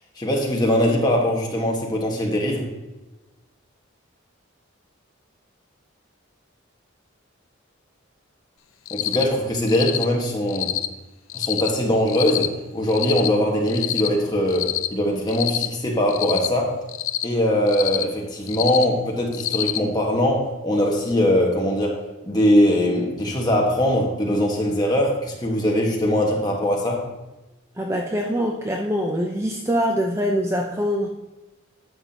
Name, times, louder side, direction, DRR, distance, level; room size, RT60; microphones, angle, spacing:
voice 1, 0.2-2.7 8.9-10.7 11.3-16.7 17.2-27.0, left 1 dB, 20° left, -1 dB, 1.5 m, -21 dB
Cricket, 8.9-9.2 9.7-10.0 10.5-10.9 11.3-11.7 12.1-12.5 12.9-13.3 13.7-14.1 14.5-14.9 15.3-15.7 16.1-16.5 16.9-17.2 17.7-18.0 18.5-18.8 19.3-19.8, left 13 dB, 85° left, 0.6 m, -26 dB
voice 2, 27.8-31.1, equal, 15° right, 1 dB, 0.5 m, -24 dB
11.0 x 7.3 x 2.9 m, 1.1 s
head